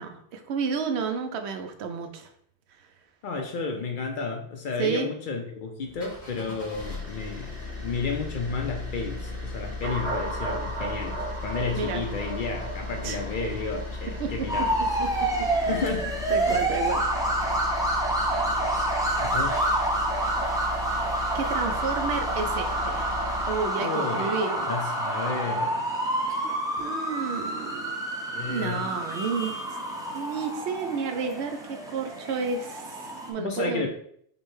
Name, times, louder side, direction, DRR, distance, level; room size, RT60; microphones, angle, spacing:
voice 1, 0.0-2.3 2.8-2.9 4.8-5.1 11.7-12.0 13.0-13.2 14.2-14.5 15.0-15.1 15.6-15.8 16.3-17.3 21.3-23.1 23.5-24.6 26.8-28.0 28.5-29.5 30.1-33.8, right 5 dB, 80° right, 6 dB, 0.8 m, -31 dB
voice 2, 3.2-7.5 7.8-14.7 15.7-16.2 16.5-16.6 19.2-19.7 23.8-25.8 28.3-28.9 33.4-33.9, left 4 dB, 60° left, 4 dB, 0.6 m, -32 dB
sound 1, 5.8-23.7, left 2 dB, 85° left, 2.0 m, -36 dB
sound 2, 9.8-15.4, right 2 dB, 35° right, 0.7 m, -36 dB
sound 3, 14.5-33.3, right 1 dB, 5° right, 0.4 m, -28 dB
5.2 x 2.1 x 3.1 m, 0.66 s
omnidirectional pair, 1.1 m